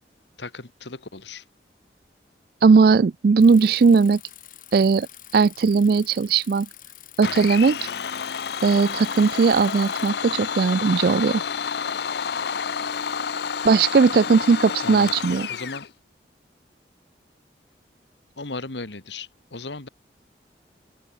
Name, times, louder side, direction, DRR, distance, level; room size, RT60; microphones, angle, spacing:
voice 1, 0.4-1.4 14.8-15.2 15.5-15.9 18.4-19.9, left 3 dB, 85° left, 2.0 m, -36 dB
voice 2, 2.6-4.2 4.7-5.1 5.3-6.7 7.2-7.8 8.6-11.4 13.6-15.5, right 5 dB, 55° right, 0.3 m, -18 dB
Bicycle, 3.4-10.1, left 13 dB, 50° left, 4.2 m, -47 dB
Domestic sounds home sounds, 7.2-15.9, left 6 dB, 70° left, 0.6 m, -29 dB
open air
head